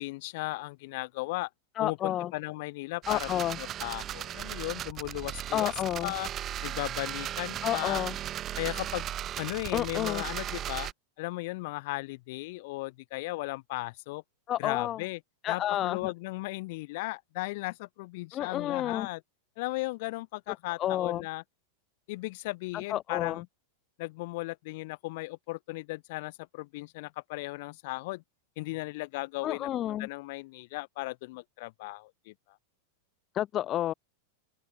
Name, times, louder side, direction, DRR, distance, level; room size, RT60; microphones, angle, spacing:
voice 1, 0.0-1.5 1.8-3.3 3.6-5.7 6.0-6.3 6.6-8.0 8.6-9.1 9.4-10.9 11.2-14.2 14.6-15.2 15.5-19.2 19.6-21.4 22.1-23.4 24.0-28.2 28.6-29.7 30.0-32.3, left 22 dB, 50° left, 3.0 m, -36 dB
voice 2, 1.8-2.3 3.1-3.6 5.5-6.1 7.6-8.2 9.7-10.2 14.5-15.0 15.4-16.1 18.3-19.1 20.8-21.2 22.7-23.4 29.4-30.1 33.3-33.9, left 12 dB, 30° left, 1.3 m, -30 dB
sound 1, 3.0-10.9, right 11 dB, 30° right, 1.2 m, -36 dB
open air
figure-of-eight pair, 90°, 0 cm